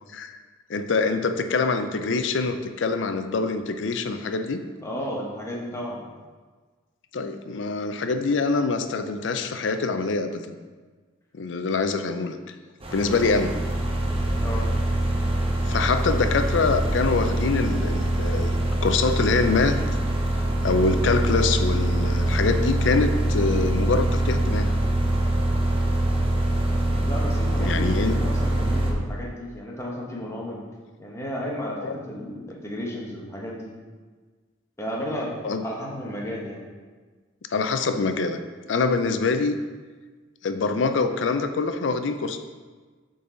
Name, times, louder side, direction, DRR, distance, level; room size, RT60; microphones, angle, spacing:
voice 1, 0.7-4.6 7.1-10.6 11.3-12.5 12.9-13.5 15.7-18.5 18.8-19.8 20.6-24.7 27.6-28.1 31.8-31.9 35.4-35.6 37.5-38.4 38.7-39.6 40.4-42.4, left 4 dB, 75° left, 8 dB, 0.5 m, -24 dB
voice 2, 4.8-6.1 14.4-14.7 27.0-30.6 31.0-33.7 34.8-35.3 35.6-36.6, equal, 15° left, -3 dB, 1.0 m, -33 dB
sound 1, 12.8-28.9, right 1 dB, 30° right, 0.8 m, -24 dB
6.8 x 3.9 x 3.9 m, 1.4 s
head